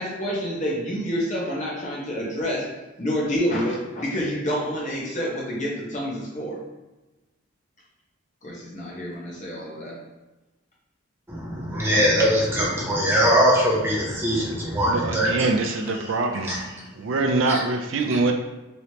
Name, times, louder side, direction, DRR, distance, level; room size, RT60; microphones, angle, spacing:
voice 1, 0.0-2.7 3.0-6.6 8.4-10.0, equal, 35° left, -4 dB, 0.8 m, -28 dB
voice 2, 11.3-16.2 16.4-16.6 17.5-17.6, equal, 10° right, -4 dB, 0.6 m, -22 dB
voice 3, 14.9-16.5 17.0-18.3, right 3 dB, 65° right, 4 dB, 0.4 m, -24 dB
3.1 x 3.0 x 2.8 m, 1.1 s
head